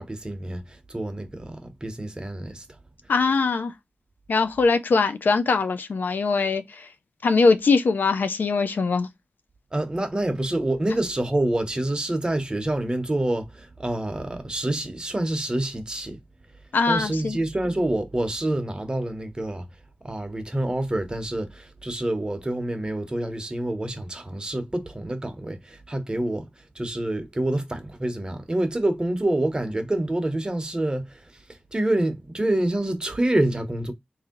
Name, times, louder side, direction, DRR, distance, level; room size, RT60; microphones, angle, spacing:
voice 1, 0.0-2.8 9.7-16.2 16.9-19.7 20.0-33.9, right 1 dB, 25° right, 0.9 m, -27 dB
voice 2, 3.1-3.7 4.3-6.9 7.2-9.1 16.7-17.4, left 4 dB, 90° left, 0.5 m, -22 dB
3.2 x 2.7 x 3.7 m
wide cardioid pair, 65°, 3 cm